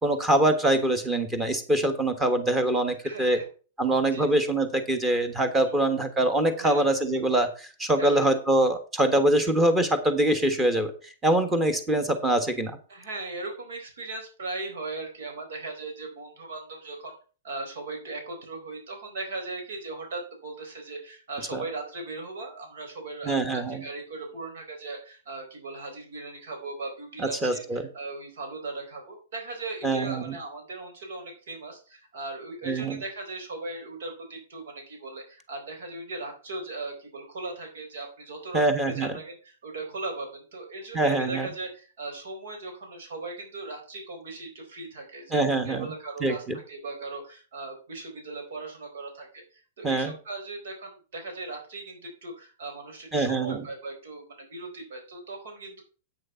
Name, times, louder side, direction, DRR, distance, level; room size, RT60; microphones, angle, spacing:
voice 1, 0.0-3.4 3.8-10.9 11.2-12.8 21.5-21.6 23.2-23.8 27.2-27.8 29.8-30.3 32.6-33.0 38.5-39.1 40.9-41.5 45.3-45.9 46.2-46.6 49.8-50.1 53.1-53.6, right 1 dB, 10° right, 10 dB, 1.4 m, -24 dB
voice 2, 3.0-3.4 4.0-4.3 5.6-5.7 6.6-6.8 8.0-8.3 12.9-17.2 17.4-55.8, right 3 dB, 80° right, 3 dB, 4.3 m, -38 dB
9.1 x 6.4 x 5.7 m, 0.36 s
supercardioid pair, 160°, 0 cm